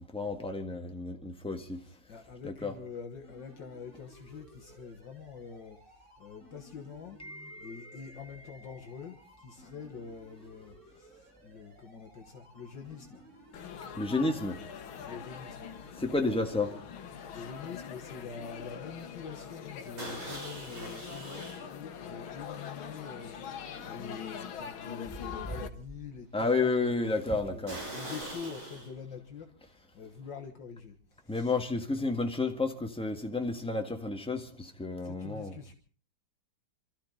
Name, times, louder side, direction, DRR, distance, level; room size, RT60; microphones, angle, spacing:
voice 1, 0.1-1.8 2.4-2.7 7.2-8.0 13.9-14.6 16.0-16.7 26.3-27.8 31.3-35.6, left 3 dB, 5° left, 1.4 m, -31 dB
voice 2, 2.1-5.8 6.2-7.2 7.6-9.2 9.4-13.2 15.1-15.7 17.3-27.6 27.9-29.5 29.9-31.0 31.3-31.5 35.0-35.7, left 6 dB, 65° left, 2.0 m, -45 dB
sound 1, 3.2-15.9, right 1 dB, 25° right, 5.9 m, -58 dB
sound 2, 12.8-13.1 13.3-18.0 18.2-18.5 18.9-19.0 20.0-21.7 22.3-22.4 23.0-23.1 23.6-23.7 27.7-28.9, right 1 dB, 85° right, 6.9 m, -43 dB
Laughter / Chatter / Crowd, 13.5-25.7, left 7 dB, 80° left, 2.0 m, -43 dB
27.0 x 13.5 x 3.9 m
omnidirectional pair, 2.2 m